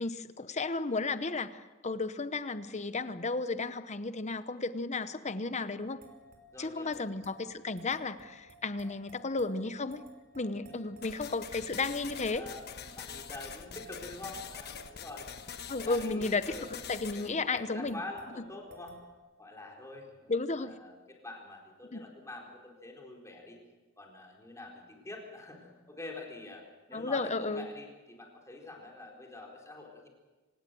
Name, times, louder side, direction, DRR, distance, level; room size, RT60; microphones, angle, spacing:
voice 1, 0.0-6.0 6.6-10.0 10.3-12.5 15.7-16.4 16.9-18.0 20.3-20.8 21.9-22.0 26.9-27.7, left 3 dB, 35° left, 12 dB, 0.9 m, -33 dB
sound 1, 5.8-19.1, right 1 dB, 45° right, 5.0 m, -56 dB
voice 2, 6.5-7.0 12.3-15.3 15.8-16.7 17.1-19.0 19.4-23.6 24.0-26.6 26.9-30.1, left 2 dB, 15° left, 0 dB, 4.3 m, -46 dB
sound 2, 11.0-17.3, left 7 dB, 50° left, 1.3 m, -45 dB
27.0 x 17.5 x 7.7 m, 1.2 s
head